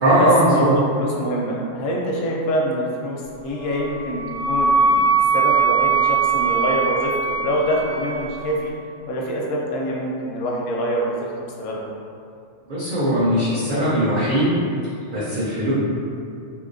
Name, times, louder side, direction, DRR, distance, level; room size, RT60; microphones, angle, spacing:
voice 1, 0.0-0.7 12.7-14.5 15.1-15.7, right 1 dB, 50° right, -11 dB, 0.6 m, -19 dB
voice 2, 0.5-4.2 4.5-5.1 5.3-8.7 9.1-11.3 11.6-11.9, equal, 65° left, -2 dB, 0.7 m, -25 dB
Wind instrument woodwind instrument, 3.6-8.4, right 5 dB, 85° right, 1.2 m, -21 dB
2.8 x 2.7 x 2.5 m, 2.5 s
omnidirectional pair, 1.4 m